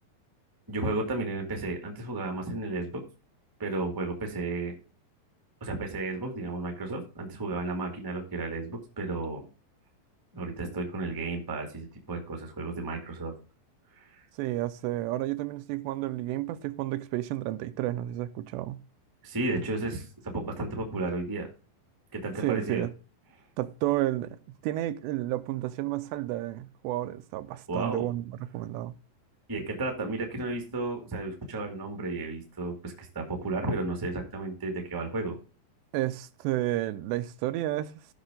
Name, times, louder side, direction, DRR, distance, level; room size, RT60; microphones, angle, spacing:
voice 1, 0.7-3.0 3.6-4.7 5.6-9.4 10.3-13.3 13.9-14.2 19.2-21.5 22.1-22.8 27.7-28.0 29.5-35.4, right 2 dB, 20° right, 0.6 m, -33 dB
voice 2, 14.4-18.8 22.4-22.9 23.6-24.4 24.6-28.9 35.9-37.9, right 15 dB, 80° right, 2.7 m, -31 dB
14.5 x 6.0 x 3.8 m
omnidirectional pair, 5.2 m